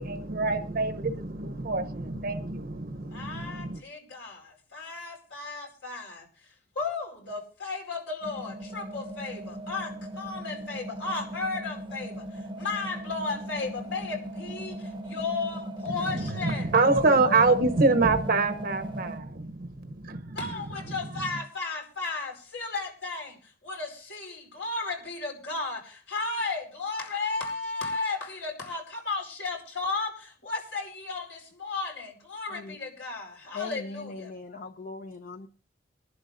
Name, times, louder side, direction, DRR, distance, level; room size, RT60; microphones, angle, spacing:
voice 1, 0.0-3.8 15.9-20.4, right 3 dB, 55° right, 0.8 m, -26 dB
voice 2, 3.0-6.3 6.7-16.7 17.2-17.5 20.3-34.3, left 3 dB, 80° left, 4.7 m, -34 dB
sound 1, 8.2-19.2, right 1 dB, 25° right, 0.7 m, -38 dB
voice 3, 33.5-35.5, left 4 dB, 50° left, 0.7 m, -39 dB
24.0 x 11.5 x 2.5 m
head